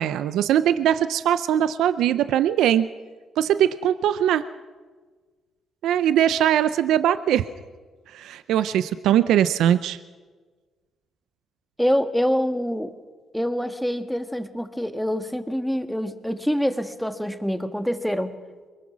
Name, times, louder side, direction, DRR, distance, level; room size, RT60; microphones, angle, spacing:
voice 1, 0.0-2.9 3.4-4.5 5.8-7.5 8.1-10.0, right 10 dB, 80° right, 13 dB, 0.5 m, -21 dB
voice 2, 11.8-12.9 13.3-18.3, equal, ahead, 8 dB, 1.5 m, -25 dB
23.0 x 21.0 x 6.2 m, 1.4 s
cardioid pair, 90°, 0 cm